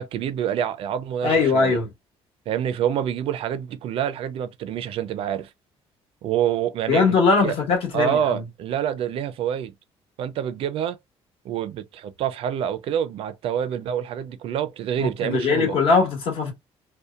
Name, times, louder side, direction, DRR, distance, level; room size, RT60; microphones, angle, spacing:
voice 1, 0.0-1.8 2.5-5.5 6.2-7.5 7.9-9.7 10.2-11.0 11.4-15.8, right 9 dB, 60° right, 0.4 m, -27 dB
voice 2, 1.2-1.9 6.9-8.4 15.0-16.5, left 4 dB, 60° left, 1.2 m, -20 dB
2.7 x 2.1 x 2.3 m
cardioid pair, 160°, 11 cm